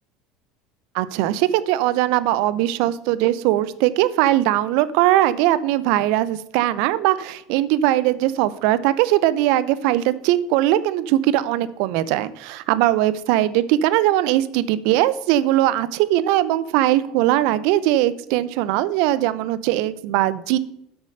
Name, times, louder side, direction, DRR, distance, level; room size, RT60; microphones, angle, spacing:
voice 1, 0.9-20.6, right 14 dB, 65° right, 16 dB, 0.6 m, -20 dB
8.1 x 6.4 x 6.5 m, 0.77 s
hypercardioid pair, 75°, 0 cm